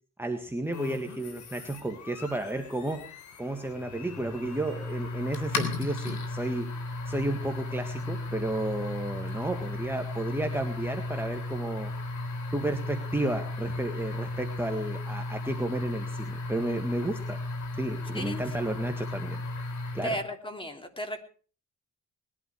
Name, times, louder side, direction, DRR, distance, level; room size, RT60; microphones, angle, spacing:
voice 1, 0.2-6.7 7.1-11.9 12.5-17.4 17.8-19.4 19.9-20.2, right 1 dB, 5° right, 4 dB, 1.8 m, -32 dB
sound 1, 0.7-20.3, left 2 dB, 70° left, 3.4 m, -35 dB
voice 2, 20.0-21.2, equal, 15° left, 5 dB, 3.0 m, -34 dB
20.5 x 11.5 x 4.8 m, 0.41 s
cardioid pair, 90°, 30 cm